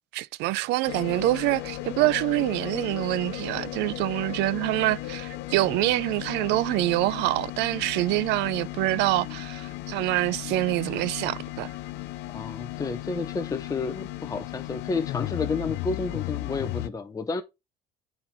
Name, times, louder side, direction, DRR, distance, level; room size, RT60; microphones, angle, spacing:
voice 1, 0.1-11.7, right 18 dB, 90° right, 0.4 m, -26 dB
sound 1, 0.9-16.9, left 17 dB, 85° left, 0.6 m, -36 dB
voice 2, 12.3-17.4, left 4 dB, 20° left, 0.7 m, -31 dB
9.6 x 4.4 x 2.7 m
cardioid pair, 110°, 17 cm